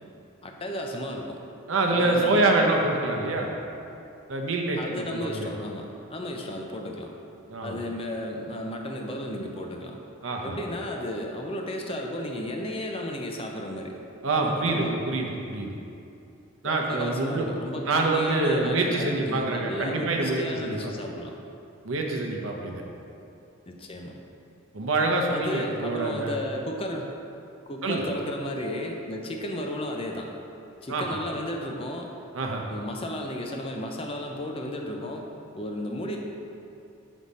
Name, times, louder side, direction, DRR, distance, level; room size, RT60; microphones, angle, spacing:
voice 1, 0.4-1.4 1.9-2.7 4.7-7.1 7.6-10.0 10.4-14.0 14.4-15.0 16.6-21.3 23.7-24.2 25.3-27.1 27.7-30.3 30.8-32.1 32.7-35.2 35.5-36.2, left 1 dB, 25° left, 2 dB, 0.5 m, -34 dB
voice 2, 1.7-3.5 4.3-5.5 7.5-7.8 10.2-10.6 14.2-15.7 16.6-17.5 17.9-20.8 21.8-22.8 24.7-26.4 27.8-28.0 30.9-31.2 32.3-32.6, right 2 dB, 65° right, 0 dB, 0.8 m, -26 dB
6.3 x 5.4 x 4.1 m, 2.7 s
head